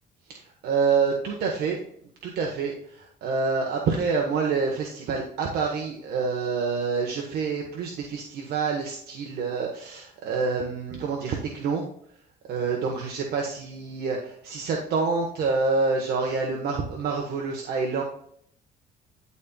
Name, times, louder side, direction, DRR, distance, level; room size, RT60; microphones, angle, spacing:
voice 1, 0.3-1.8 2.2-11.9 12.5-18.0, right 4 dB, 70° right, 1 dB, 1.4 m, -27 dB
12.5 x 4.4 x 2.4 m, 0.66 s
cardioid pair, 110°, 17 cm